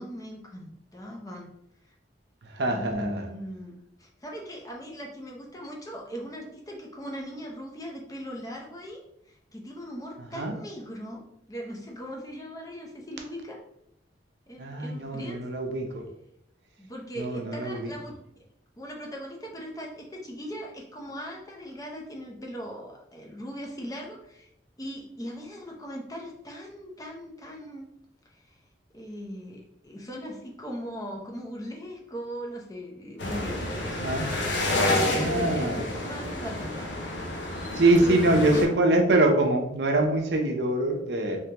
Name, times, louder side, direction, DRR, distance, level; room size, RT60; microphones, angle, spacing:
voice 1, 0.0-1.5 2.7-3.7 4.0-11.2 11.5-13.6 14.5-15.4 16.8-18.2 18.8-24.5 24.8-27.9 28.3-28.6 28.9-34.0 34.4-36.9 38.0-38.7, equal, 20° left, -1 dB, 0.7 m, -39 dB
voice 2, 2.5-3.3 10.3-10.5 14.6-16.0 17.2-17.9 34.0-34.3 35.1-35.8 37.7-41.4, right 2 dB, 65° right, 3 dB, 0.6 m, -24 dB
sound 1, 33.2-38.6, left 1 dB, 75° left, 0.8 m, -29 dB
3.4 x 3.3 x 2.9 m, 0.77 s
head